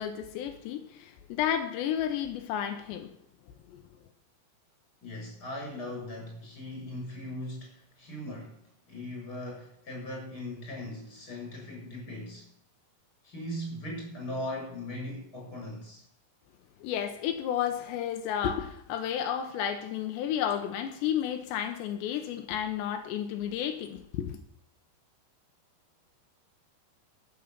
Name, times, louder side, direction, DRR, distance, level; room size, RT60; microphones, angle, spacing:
voice 1, 0.0-3.1 3.7-3.8 16.8-24.4, left 9 dB, 85° left, 6 dB, 3.2 m, -32 dB
voice 2, 5.0-8.6 8.9-12.5 13.2-16.0, left 1 dB, 20° left, -1 dB, 6.5 m, -39 dB
12.5 x 9.3 x 7.5 m, 0.72 s
omnidirectional pair, 5.1 m